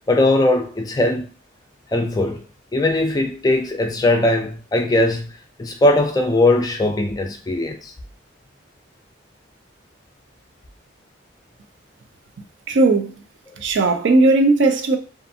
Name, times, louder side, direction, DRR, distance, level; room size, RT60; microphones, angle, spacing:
voice 1, 0.1-1.3 1.9-2.4 2.7-5.3 5.6-7.9 13.5-13.6, left 2 dB, 20° left, 0.3 m, -19 dB
voice 2, 12.7-13.1 13.6-15.0, right 2 dB, 70° right, 0.4 m, -16 dB
2.5 x 2.4 x 2.6 m
head